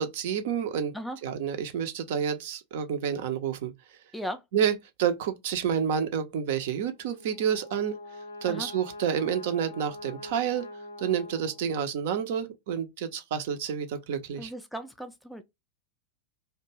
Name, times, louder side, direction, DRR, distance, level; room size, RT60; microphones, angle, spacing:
voice 1, 0.0-0.9 1.2-3.7 4.5-8.0 8.4-10.7 11.0-14.5, right 8 dB, 50° right, 0.5 m, -29 dB
Brass instrument, 6.9-12.0, left 2 dB, 70° left, 0.5 m, -44 dB
voice 2, 14.4-15.4, equal, ahead, 0.4 m, -36 dB
2.5 x 2.2 x 2.9 m
figure-of-eight pair, 90°, 0 cm